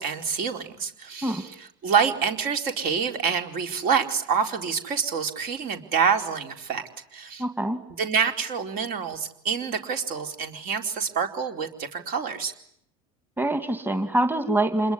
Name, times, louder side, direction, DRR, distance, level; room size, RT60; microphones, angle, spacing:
voice 1, 0.0-6.8 7.1-7.4 8.0-12.5, right 6 dB, 55° right, 5 dB, 4.4 m, -27 dB
voice 2, 7.4-7.8 13.4-14.9, right 1 dB, 10° right, 8 dB, 2.5 m, -24 dB
28.0 x 22.0 x 9.7 m, 0.70 s
supercardioid pair, 100°, 18 cm